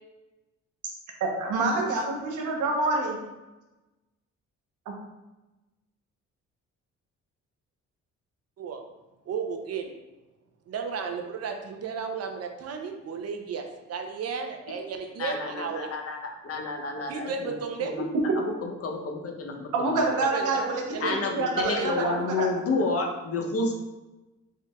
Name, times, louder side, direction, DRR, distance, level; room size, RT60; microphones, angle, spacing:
voice 1, 1.2-3.2 4.9-5.0 19.7-20.8 21.1-22.1 22.4-22.5, right 3 dB, 80° right, 1 dB, 1.0 m, -27 dB
voice 2, 1.7-2.1 8.6-8.8 9.3-9.9 10.7-15.9 17.1-17.9 20.2-20.7 20.9-21.2 21.6-22.2, right 6 dB, 55° right, 4 dB, 0.6 m, -34 dB
voice 3, 15.1-16.2 16.4-17.5 17.8-18.0 18.6-20.0 21.0-23.7, left 3 dB, 50° left, 2 dB, 0.8 m, -30 dB
4.6 x 3.6 x 2.3 m, 1.1 s
cardioid pair, 90°, 30 cm